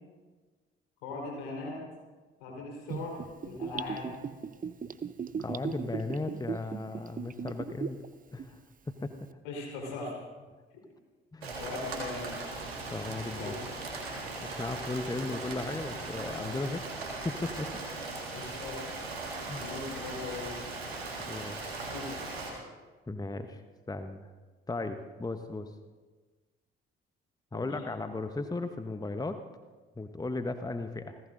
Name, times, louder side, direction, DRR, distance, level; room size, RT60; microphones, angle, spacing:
voice 1, 1.0-1.8 2.4-3.2 3.5-4.1 9.4-10.2 11.6-12.3 13.2-13.6 18.3-18.8 19.5-20.6 21.0-21.2 21.8-22.1 27.5-27.8, left 3 dB, 70° left, -1 dB, 4.1 m, -39 dB
Gurgling / Bathtub (filling or washing), 2.9-8.1 8.4-8.5, right 6 dB, 25° right, 0.8 m, -37 dB
voice 2, 5.4-8.0 8.3-8.6 9.0-9.1 11.3-11.5 12.9-13.5 14.4-16.9 17.2-17.8 19.5-19.6 21.3-21.7 23.1-23.6 23.9-24.3 24.7-25.7 27.5-29.4 30.0-31.2, left 2 dB, 10° left, 9 dB, 0.9 m, -36 dB
Rain, 11.4-22.5, right 3 dB, 80° right, 1.9 m, -39 dB
29.5 x 15.5 x 2.6 m, 1.4 s
figure-of-eight pair, 40°, 30 cm